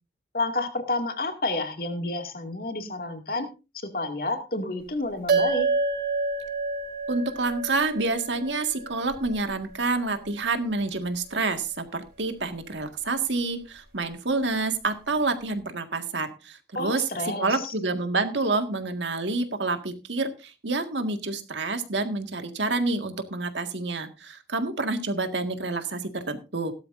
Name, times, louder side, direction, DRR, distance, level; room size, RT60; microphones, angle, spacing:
voice 1, 0.3-3.5 3.9-5.7 16.7-17.7, left 2 dB, 50° left, 5 dB, 2.2 m, -30 dB
sound 1, 5.3-10.0, right 3 dB, 50° right, 4.4 m, -29 dB
voice 2, 7.1-17.0 17.4-26.7, right 3 dB, 85° right, 7 dB, 1.8 m, -28 dB
17.0 x 12.5 x 2.6 m, 0.29 s
head